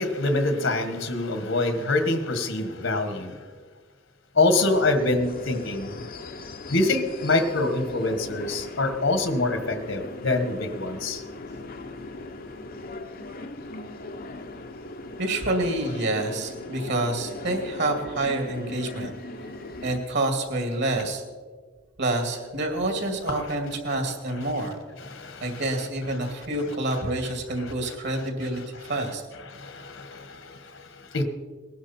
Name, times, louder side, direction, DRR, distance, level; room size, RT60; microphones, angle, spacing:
voice 1, 0.0-3.4 4.3-5.9 6.7-11.2 25.1-25.6 27.6-27.9 29.5-31.2, left 2 dB, 65° left, 8 dB, 1.5 m, -25 dB
sound 1, 4.4-20.0, left 2 dB, 45° left, 0.9 m, -39 dB
voice 2, 15.2-19.1 19.8-21.2 22.0-24.8 25.4-29.2, right 2 dB, 55° right, 4 dB, 2.3 m, -27 dB
19.5 x 11.0 x 4.3 m, 1.5 s
head